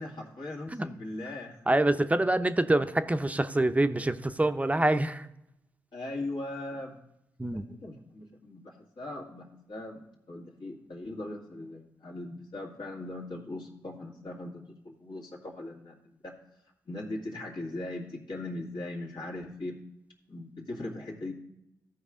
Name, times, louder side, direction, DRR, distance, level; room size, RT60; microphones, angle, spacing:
voice 1, 0.0-1.8 5.9-7.0 7.5-16.0 16.2-16.4 16.9-19.8 20.3-21.3, left 2 dB, 65° left, -3 dB, 2.0 m, -39 dB
voice 2, 1.7-5.3 7.4-7.6, right 1 dB, 15° right, 9 dB, 0.6 m, -26 dB
14.5 x 4.8 x 3.7 m, 0.82 s
supercardioid pair, 40°, 8 cm